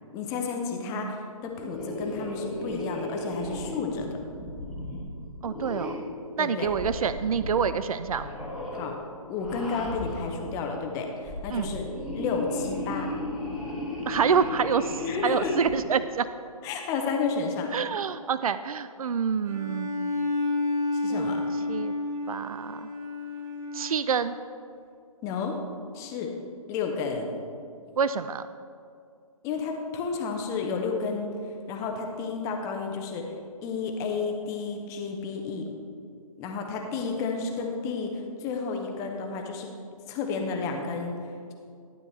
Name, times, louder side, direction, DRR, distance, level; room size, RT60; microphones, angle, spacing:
voice 1, 0.1-4.1 6.4-6.7 8.7-9.0 9.3-11.9 12.1-13.1 15.0-15.6 16.6-17.7 20.9-21.4 25.2-25.6 25.9-26.3 26.7-27.4 29.4-31.4 31.7-33.3 33.6-35.7 36.4-39.7 40.1-41.5, left 5 dB, 15° left, 2 dB, 0.8 m, -31 dB
sound 1, 1.5-6.2 6.6-7.8 8.1-8.9 9.4-10.4 11.1-15.8, left 1 dB, ahead, 1.5 m, -35 dB
voice 2, 5.4-6.0 6.4-8.3 11.5-11.7 14.1-16.3 17.7-19.9 21.1-21.3 21.7-21.9 22.3-22.9 23.7-24.4 28.0-28.5, right 6 dB, 70° right, 13 dB, 0.4 m, -27 dB
Bowed string instrument, 19.4-24.2, left 2 dB, 25° right, 2.8 m, -30 dB
12.0 x 9.3 x 3.2 m, 2.4 s
figure-of-eight pair, 140°, 19 cm